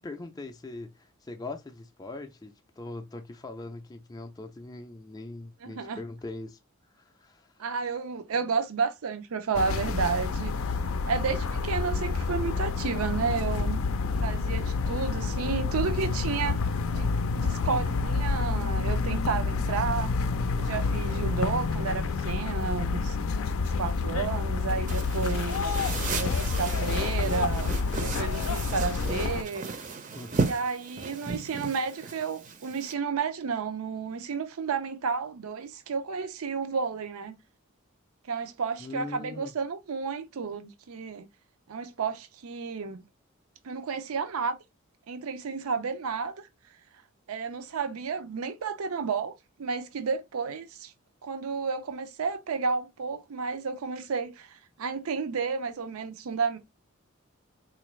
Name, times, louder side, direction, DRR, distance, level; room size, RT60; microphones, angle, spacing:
voice 1, 0.0-6.6 7.0-7.6 30.1-30.4 38.8-39.5, left 2 dB, 15° left, 0.3 m, -41 dB
voice 2, 5.6-6.0 7.6-10.5 11.1-13.8 14.2-16.6 16.9-17.1 17.3-20.1 20.6-23.2 23.6-25.7 26.2-29.7 30.4-37.3 38.3-41.3 41.7-43.0 43.6-44.6 45.1-46.5 47.3-50.9 51.2-56.6, right 5 dB, 85° right, 0.5 m, -31 dB
sound 1, 9.5-29.4, left 4 dB, 80° left, 0.4 m, -28 dB
sound 2, 24.9-32.9, right 4 dB, 35° right, 0.5 m, -35 dB
3.9 x 2.5 x 3.1 m
head